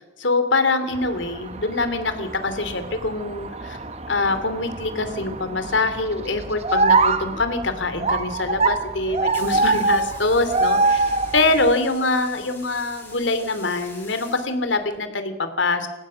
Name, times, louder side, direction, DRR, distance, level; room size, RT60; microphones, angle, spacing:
voice 1, 0.0-3.8 4.1-15.9, left 3 dB, 80° left, 9 dB, 2.9 m, -24 dB
sound 1, 0.9-11.7, right 3 dB, 35° right, 1.1 m, -24 dB
sound 2, 9.0-15.0, left 2 dB, 10° left, 7.0 m, -45 dB
28.5 x 15.5 x 6.4 m, 1.0 s
head